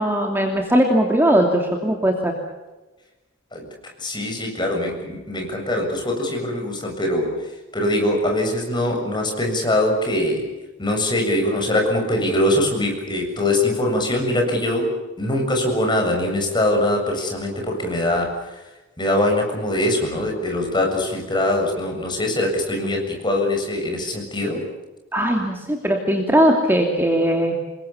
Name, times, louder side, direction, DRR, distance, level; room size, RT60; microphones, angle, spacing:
voice 1, 0.0-2.3 25.1-27.5, equal, 10° right, 1 dB, 2.8 m, -19 dB
voice 2, 4.0-7.3 7.7-10.4 10.8-14.9 15.2-18.6 19.0-24.6, left 1 dB, 20° left, 2 dB, 7.3 m, -22 dB
28.0 x 22.0 x 7.2 m, 1.1 s
head